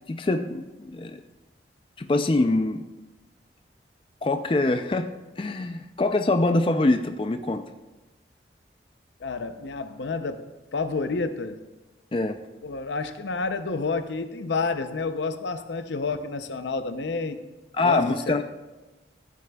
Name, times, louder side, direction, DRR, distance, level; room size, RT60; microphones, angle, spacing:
voice 1, 0.1-1.2 2.0-2.9 4.2-7.6 12.1-12.4 17.7-18.4, left 2 dB, 30° left, 7 dB, 0.4 m, -24 dB
voice 2, 9.2-11.6 12.6-17.4 17.8-18.4, left 4 dB, 85° left, 10 dB, 0.6 m, -30 dB
15.0 x 8.3 x 2.3 m, 1.1 s
head